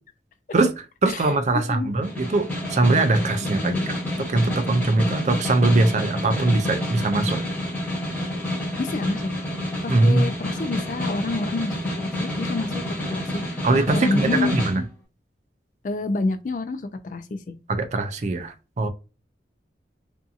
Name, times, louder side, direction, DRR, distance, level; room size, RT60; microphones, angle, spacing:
voice 1, 0.5-4.0 4.3-7.4 9.9-10.3 13.6-14.8 17.7-18.9, right 2 dB, 40° right, 0.4 m, -21 dB
voice 2, 1.5-1.9 3.5-3.9 8.8-9.3 9.8-12.8 13.1-14.6 15.8-17.5, left 3 dB, 45° left, 0.3 m, -28 dB
Snare drum, 2.0-14.8, left 1 dB, 10° left, 1.2 m, -29 dB
2.6 x 2.6 x 2.4 m
head